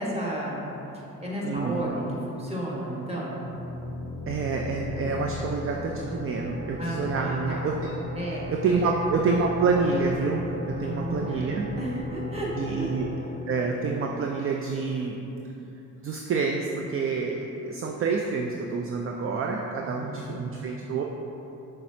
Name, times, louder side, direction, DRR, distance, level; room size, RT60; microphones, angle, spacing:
voice 1, 0.0-3.4 6.8-7.7 8.1-8.9 10.8-13.3 19.8-20.4, right 1 dB, 15° right, -6 dB, 1.3 m, -33 dB
voice 2, 1.4-1.9 4.3-8.0 8.5-11.7 12.6-13.1 13.5-15.3 16.0-21.0, right 4 dB, 40° right, 1 dB, 0.4 m, -28 dB
sound 1, 3.5-15.0, left 2 dB, 30° left, 0.5 m, -36 dB
5.9 x 3.2 x 2.8 m, 2.9 s
supercardioid pair, 60°, 35 cm